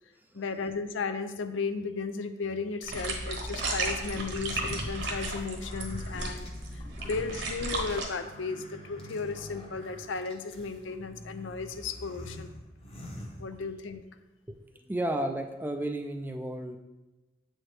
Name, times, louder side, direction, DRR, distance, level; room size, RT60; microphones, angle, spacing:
voice 1, 0.3-6.5 7.0-12.5 13.4-14.0, left 4 dB, 90° left, 10 dB, 0.5 m, -35 dB
sound 1, 2.8-8.0, right 2 dB, 70° right, 1.2 m, -34 dB
sound 2, 4.3-14.0, left 1 dB, 30° left, 0.9 m, -45 dB
voice 2, 5.9-6.3 6.9-7.2 14.5-14.6 14.9-16.8, right 1 dB, 10° right, 6 dB, 0.3 m, -33 dB
7.7 x 4.4 x 3.3 m, 1.1 s
head